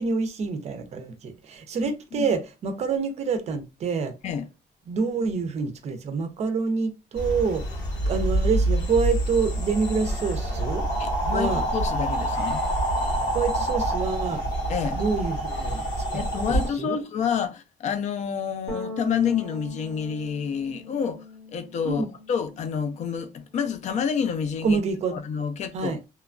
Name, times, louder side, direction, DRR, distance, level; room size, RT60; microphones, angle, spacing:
voice 1, 0.0-4.1 4.9-7.7 8.1-10.8 11.3-11.6 13.3-14.4 14.9-16.2 16.5-17.0 21.8-22.1 24.6-25.2 25.7-26.0, right 5 dB, 40° right, 0.5 m, -27 dB
sound 1, 7.2-16.7, right 1 dB, 85° left, 1.5 m, -26 dB
voice 2, 11.0-12.6 14.7-15.0 16.1-21.2 21.5-24.8 25.1-25.9, left 7 dB, 45° left, 0.4 m, -28 dB
sound 2, 18.7-23.2 23.5-24.9, left 2 dB, ahead, 0.7 m, -42 dB
3.0 x 2.2 x 2.4 m
cardioid pair, 160°, 17 cm